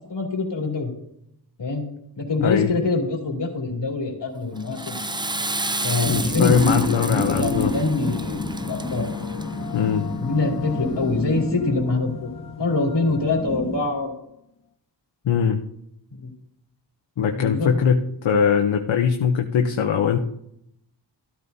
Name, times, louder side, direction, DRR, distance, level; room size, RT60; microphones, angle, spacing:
voice 1, 0.1-0.9 1.6-1.8 2.2-5.0 5.8-9.1 10.2-12.3 12.6-14.1 16.2-16.3 17.3-17.7, left 3 dB, 65° left, 1 dB, 2.7 m, -25 dB
voice 2, 2.4-2.7 6.1-7.7 9.7-10.1 15.2-15.6 17.2-20.2, left 7 dB, 85° left, 4 dB, 0.8 m, -21 dB
sound 1, 4.5-14.3, left 7 dB, 50° left, 0.7 m, -37 dB
Water / Toilet flush, 4.6-9.8, right 2 dB, 10° right, 0.4 m, -31 dB
sound 2, 6.0-13.9, equal, 10° left, 1.9 m, -31 dB
13.5 x 13.0 x 2.7 m, 0.77 s
wide cardioid pair, 90°, 45 cm